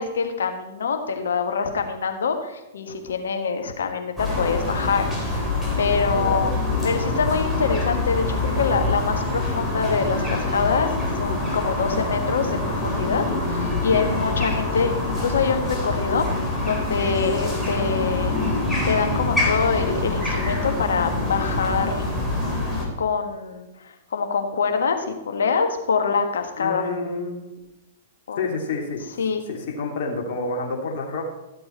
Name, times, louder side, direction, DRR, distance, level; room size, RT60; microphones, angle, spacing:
voice 1, 0.0-5.0 5.3-5.4 5.8-6.5 6.8-10.9 11.2-16.3 16.7-18.6 18.8-22.1 23.0-26.9 28.3-28.4 29.2-29.4, left 5 dB, 75° left, 6 dB, 1.5 m, -25 dB
sound 1, 4.2-22.8, left 2 dB, ahead, 3.6 m, -25 dB
voice 2, 4.8-5.2 6.1-6.5 13.8-14.0 26.6-27.4 28.3-29.0 29.5-31.2, left 3 dB, 55° left, 0 dB, 2.6 m, -29 dB
14.0 x 7.7 x 4.3 m, 0.98 s
hypercardioid pair, 110°, 0 cm